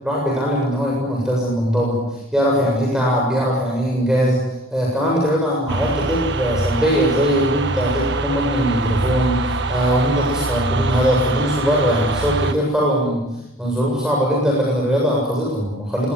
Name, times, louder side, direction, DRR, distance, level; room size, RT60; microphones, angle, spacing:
voice 1, 0.0-2.0 2.3-4.4 4.7-13.2 13.6-16.1, equal, 5° right, -3 dB, 7.5 m, -20 dB
sound 1, 5.7-12.5, right 3 dB, 55° right, 1.5 m, -24 dB
25.5 x 20.0 x 9.7 m, 0.90 s
head